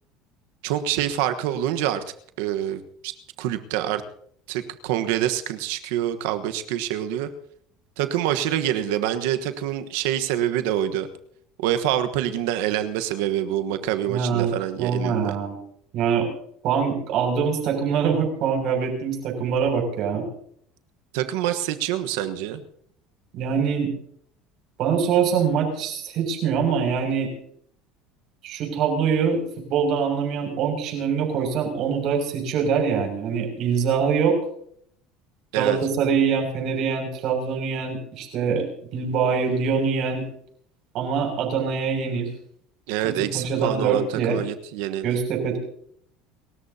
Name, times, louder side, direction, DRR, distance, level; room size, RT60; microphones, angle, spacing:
voice 1, 0.6-2.0 2.4-3.1 3.4-4.0 4.5-7.3 8.0-11.1 11.6-15.4 21.1-22.6 35.5-35.8 42.9-45.1, right 11 dB, 80° right, 9 dB, 1.3 m, -26 dB
voice 2, 14.0-14.5 14.8-15.6 15.9-16.3 16.6-20.2 23.3-23.9 24.8-27.3 28.4-29.4 29.7-34.4 35.5-38.6 38.9-40.2 40.9-42.3 43.3-44.4 45.0-45.6, right 6 dB, 55° right, 2 dB, 6.7 m, -24 dB
29.5 x 14.0 x 2.8 m, 0.65 s
supercardioid pair, 115°, 0 cm